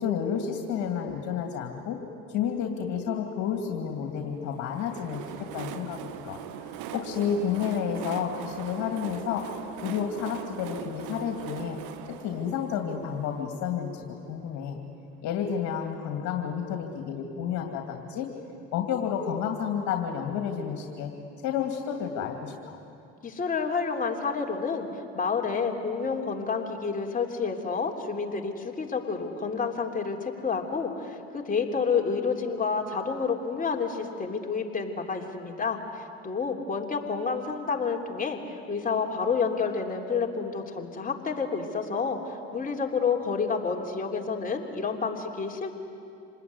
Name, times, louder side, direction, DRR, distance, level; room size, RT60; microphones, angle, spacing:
voice 1, 0.0-2.0 2.3-6.4 6.9-11.8 12.1-14.8 15.2-18.3 18.7-21.1 21.4-22.8, left 8 dB, 65° left, 3 dB, 2.6 m, -31 dB
Train, 4.5-14.1, right 10 dB, 75° right, 1.4 m, -41 dB
voice 2, 23.2-24.9 25.1-38.4 38.7-45.7, left 5 dB, 25° left, 1 dB, 3.3 m, -29 dB
27.0 x 20.0 x 9.7 m, 2.6 s
supercardioid pair, 85°, 31 cm